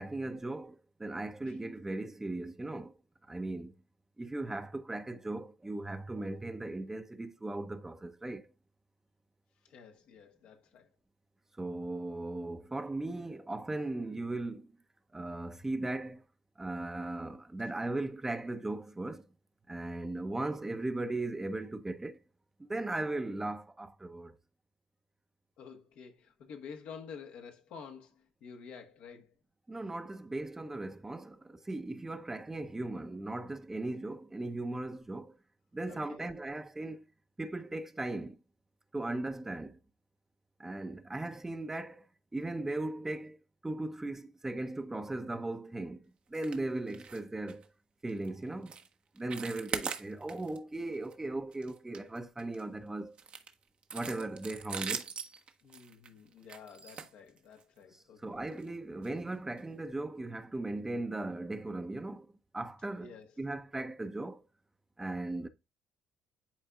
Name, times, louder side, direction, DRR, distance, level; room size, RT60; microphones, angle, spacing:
voice 1, 0.0-2.9 3.3-3.7 4.2-8.4 11.6-14.7 15.1-16.2 16.6-19.2 19.7-22.2 22.6-24.3 29.7-35.3 35.7-37.0 37.4-38.4 38.9-39.8 40.6-42.0 42.3-43.4 43.6-46.0 46.3-47.6 48.0-48.7 49.2-53.1 53.9-55.1 58.2-62.3 62.5-63.1 63.4-64.4 65.0-65.5, right 2 dB, 15° right, 0.8 m, -37 dB
voice 2, 9.6-10.9 25.6-29.3 35.9-36.2 55.6-58.5 63.0-63.4, left 6 dB, 65° left, 1.3 m, -50 dB
sound 1, 46.3-46.6 46.9-47.2 47.5-47.7 48.1-48.3 48.7-48.9 49.2-50.6 50.9-51.1 51.5-52.6 53.2-57.8 58.5-58.7 59.0-59.1 59.6-59.7, right 6 dB, 50° right, 1.0 m, -41 dB
10.5 x 4.4 x 2.4 m
hypercardioid pair, 50°, 2 cm